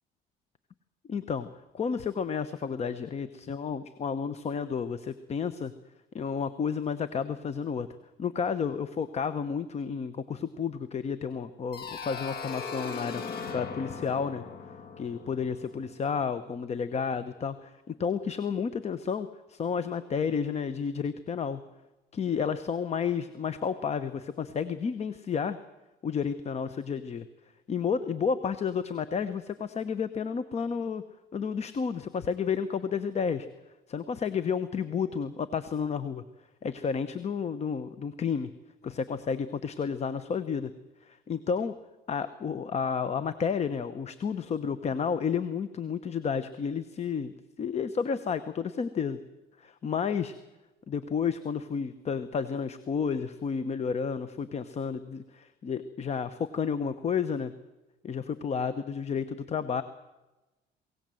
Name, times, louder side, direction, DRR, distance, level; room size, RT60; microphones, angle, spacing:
voice 1, 1.1-5.7 6.1-7.9 8.2-13.2 13.5-14.4 15.0-21.6 22.1-25.6 26.0-27.3 27.7-31.0 31.3-33.5 33.9-36.2 36.6-38.5 38.8-40.7 41.0-41.7 42.1-49.2 49.6-50.3 50.9-57.5 58.0-59.8, left 6 dB, 40° left, 13 dB, 1.0 m, -31 dB
sound 1, 11.7-16.4, left 5 dB, 65° left, 2.1 m, -39 dB
22.0 x 18.0 x 7.8 m, 1.1 s
cardioid pair, 110°, 17 cm